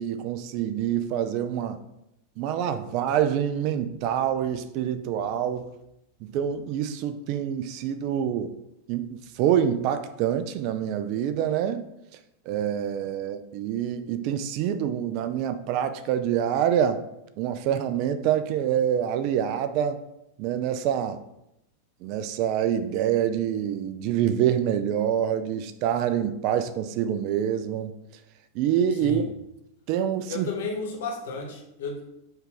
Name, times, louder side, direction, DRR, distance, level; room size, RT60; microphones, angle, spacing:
voice 1, 0.0-1.8 2.4-5.7 6.3-8.5 8.9-11.8 12.5-17.0 17.4-20.0 20.4-21.2 22.0-27.9 28.5-29.2 29.9-30.5, right 9 dB, 45° right, 10 dB, 0.3 m, -26 dB
voice 2, 28.9-29.3 30.3-32.0, left 4 dB, 60° left, 1 dB, 1.0 m, -33 dB
5.2 x 2.4 x 3.7 m, 0.84 s
figure-of-eight pair, 90°, 0 cm